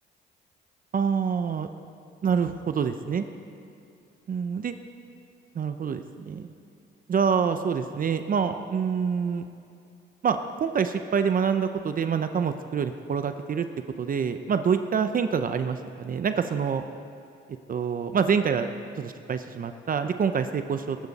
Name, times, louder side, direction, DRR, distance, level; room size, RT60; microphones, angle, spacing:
voice 1, 0.9-1.7 2.2-3.3 4.3-4.7 5.5-6.5 7.1-9.5 10.2-13.7 14.0-16.8 17.7-18.7 19.0-21.0, right 6 dB, 45° right, 9 dB, 0.7 m, -26 dB
21.0 x 12.0 x 4.2 m, 2.5 s
cardioid pair, 90°, 20 cm